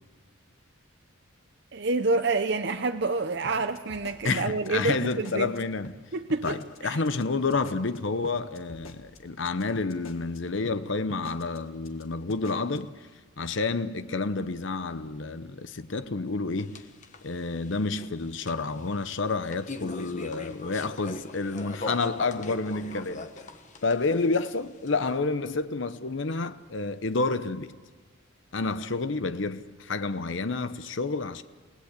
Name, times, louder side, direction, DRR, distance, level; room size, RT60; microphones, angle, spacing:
voice 1, 1.7-5.5 6.1-6.6 6.8-7.0, right 3 dB, 55° right, 0.7 m, -27 dB
sound 1, 3.4-5.6 5.8-6.0 6.3-6.8 7.0-7.2 7.5-10.4 10.6-10.8 11.1-11.6 11.8-12.0 12.3-12.9, left 2 dB, 80° left, 1.9 m, -46 dB
voice 2, 4.2-6.0 6.4-12.9 13.4-16.8 17.2-23.3 23.8-27.7 28.5-31.4, left 3 dB, 65° left, 0.8 m, -29 dB
sound 2, 16.6-25.1, left 2 dB, 35° left, 1.3 m, -41 dB
29.0 x 18.0 x 8.2 m
head